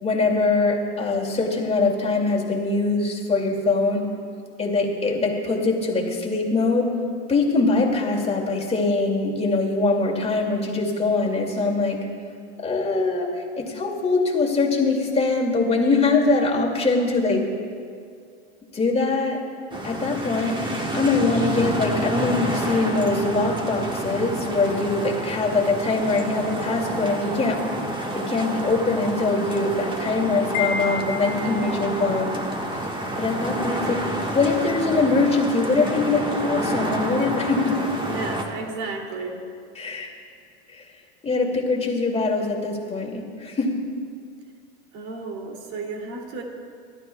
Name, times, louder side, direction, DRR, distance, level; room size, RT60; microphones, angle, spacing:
voice 1, 0.0-4.1 4.6-6.9 7.3-12.0 12.6-17.4 18.7-19.4 19.8-20.6 20.9-27.6 28.1-32.3 33.2-34.0 34.3-37.8 39.8-40.1 40.7-40.9 41.2-43.8, left 3 dB, 20° left, -1 dB, 2.4 m, -23 dB
sound 1, 19.7-38.4, right 1 dB, 15° right, 1.5 m, -29 dB
Wind chime, 30.5-31.9, left 6 dB, 70° left, 1.7 m, -30 dB
voice 2, 38.0-39.4 44.9-46.4, right 3 dB, 55° right, 1 dB, 2.8 m, -33 dB
25.0 x 13.0 x 2.3 m, 2.2 s
hypercardioid pair, 100°, 34 cm